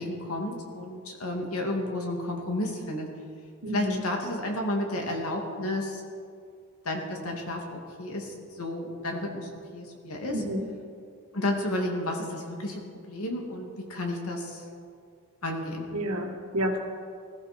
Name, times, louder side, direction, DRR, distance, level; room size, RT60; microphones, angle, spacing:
voice 1, 0.0-3.1 3.7-6.0 6.8-10.4 11.3-14.6 15.4-15.9, left 1 dB, 75° left, 1 dB, 2.7 m, -32 dB
voice 2, 3.6-4.0 10.3-10.6 15.9-16.8, equal, 80° right, 3 dB, 2.1 m, -30 dB
20.5 x 14.5 x 4.6 m, 2.3 s
head